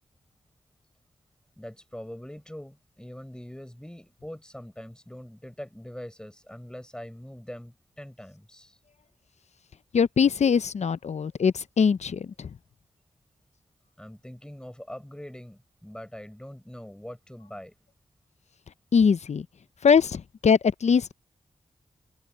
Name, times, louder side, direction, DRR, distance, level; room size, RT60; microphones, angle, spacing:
voice 1, 1.6-8.8 14.0-17.7, equal, 5° left, 6.1 m, -43 dB
voice 2, 9.9-12.5 18.9-19.5 19.8-21.1, left 6 dB, 65° left, 0.7 m, -22 dB
cardioid pair, 50°, 12 cm